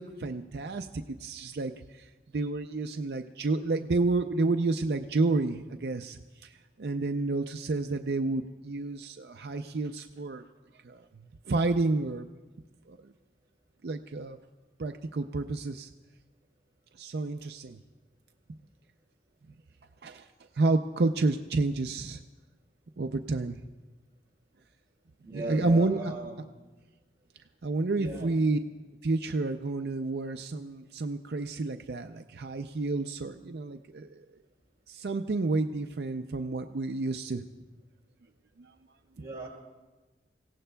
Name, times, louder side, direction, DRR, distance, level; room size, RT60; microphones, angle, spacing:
voice 1, 0.0-2.1 2.3-10.4 10.8-12.3 12.9-13.1 13.8-14.4 14.8-15.9 17.0-17.8 20.0-20.3 20.6-22.2 23.0-23.6 25.3-26.1 27.6-28.6 29.0-34.2 34.9-37.4 38.6-38.7, right 3 dB, 70° right, 6 dB, 0.5 m, -30 dB
voice 2, 25.2-26.3 27.9-28.3 39.1-39.5, right 2 dB, 20° right, -3 dB, 4.6 m, -38 dB
29.5 x 16.5 x 2.3 m, 1.2 s
head